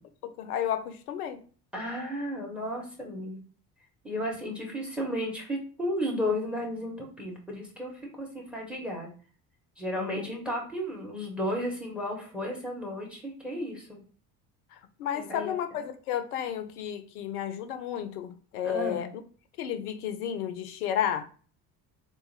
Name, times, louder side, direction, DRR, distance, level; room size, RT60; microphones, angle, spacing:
voice 1, 0.2-1.4 10.0-10.3 14.7-19.1 19.6-21.2, left 10 dB, 70° left, 0.6 m, -32 dB
voice 2, 1.7-3.4 4.0-7.9 8.2-9.1 9.8-14.0 15.1-15.9 18.6-19.1, equal, ahead, 1.6 m, -33 dB
3.5 x 2.8 x 2.9 m
figure-of-eight pair, 55°, 47 cm